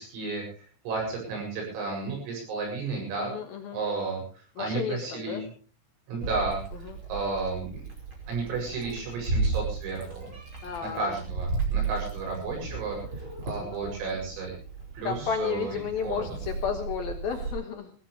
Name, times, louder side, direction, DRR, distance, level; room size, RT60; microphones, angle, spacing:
voice 1, 0.0-3.3 3.7-5.5 6.1-6.6 7.1-7.8 8.3-10.3 10.8-13.0 13.4-14.6 14.9-16.2, right 3 dB, 80° right, 0 dB, 10.5 m, -33 dB
voice 2, 3.2-3.8 4.6-5.4 6.8-7.0 10.6-11.1 13.6-14.0 15.0-17.9, left 7 dB, 70° left, 5 dB, 2.4 m, -32 dB
Meow, 6.2-17.5, right 4 dB, 25° right, 5.4 m, -34 dB
22.0 x 16.0 x 3.4 m, 0.39 s
omnidirectional pair, 6.0 m